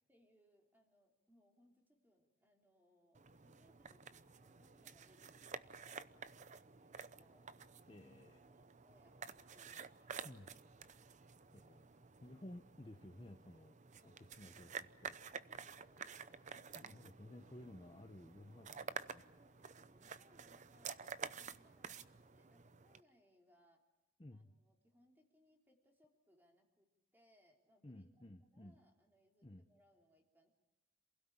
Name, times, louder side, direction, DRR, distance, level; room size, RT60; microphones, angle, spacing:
voice 1, 0.1-7.5 8.4-10.9 15.3-16.4 19.4-23.8 24.3-30.5, equal, 10° right, 1 dB, 3.5 m, -73 dB
sound 1, 3.1-23.0, right 6 dB, 35° right, 0.7 m, -51 dB
voice 2, 7.9-8.4 10.2-10.5 11.5-11.8 12.2-15.2 16.6-19.3 24.2-24.5 27.8-28.8 29.4-29.6, left 1 dB, 25° left, 5 dB, 0.9 m, -56 dB
27.5 x 16.5 x 8.8 m, 1.1 s
head